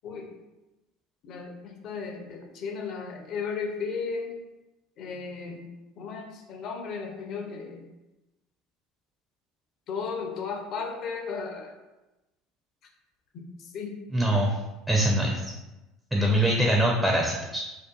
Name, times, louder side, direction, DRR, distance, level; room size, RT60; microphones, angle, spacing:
voice 1, 1.2-4.4 5.0-5.7 6.0-7.9 9.9-11.7 13.3-14.0 16.2-16.3, left 5 dB, 55° left, 3 dB, 0.4 m, -35 dB
voice 2, 14.1-14.6 14.9-15.5 16.1-17.6, right 1 dB, 10° right, -1 dB, 0.4 m, -23 dB
2.6 x 2.3 x 2.2 m, 1.0 s
hypercardioid pair, 70°, 0 cm